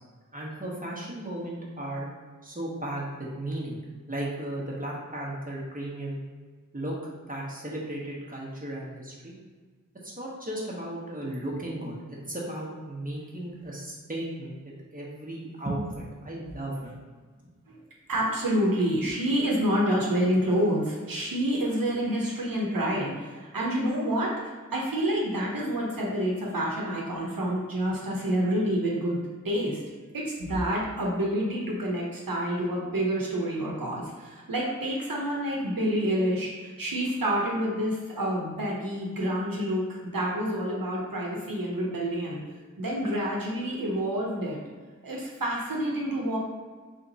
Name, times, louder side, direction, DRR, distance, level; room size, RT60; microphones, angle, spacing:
voice 1, 0.3-2.1 2.4-3.8 4.1-6.2 6.7-6.9 7.3-9.3 10.0-12.0 12.3-16.9, right 1 dB, 25° right, -4 dB, 1.1 m, -35 dB
voice 2, 18.1-29.2 29.4-29.8 30.1-42.4 42.8-44.6 45.0-46.4, equal, 90° right, -3 dB, 0.8 m, -28 dB
3.6 x 2.8 x 4.0 m, 1.5 s
wide cardioid pair, 45°, 33 cm